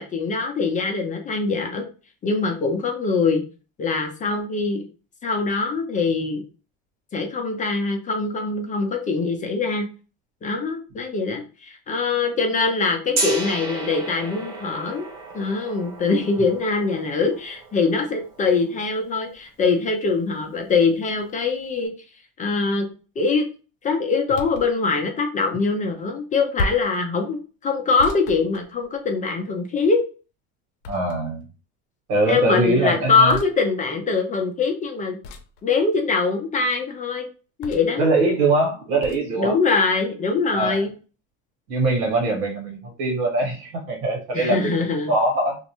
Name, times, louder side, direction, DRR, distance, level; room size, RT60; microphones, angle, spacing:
voice 1, 0.0-1.9 2.2-3.4 3.8-4.8 5.2-6.4 7.1-9.9 10.4-15.1 15.3-21.9 22.4-22.9 23.2-23.4 23.8-30.0 32.3-35.2 35.6-37.3 37.6-38.1 39.3-40.9 44.3-45.1, left 4 dB, 25° left, 3 dB, 0.5 m, -23 dB
Gong, 13.1-19.1, right 3 dB, 60° right, 1.0 m, -33 dB
sound 1, 24.3-24.7 26.6-27.0 28.0-29.2 30.8-31.4 33.3-33.5 35.2-35.6 37.6-38.0 39.0-39.3, left 2 dB, 85° left, 0.5 m, -33 dB
voice 2, 30.9-31.4 32.1-33.4 38.0-39.5 40.5-40.8 41.7-44.7 45.1-45.6, right 2 dB, 85° right, 1 dB, 1.3 m, -22 dB
2.5 x 2.0 x 2.9 m, 0.35 s
cardioid pair, 135°, 32 cm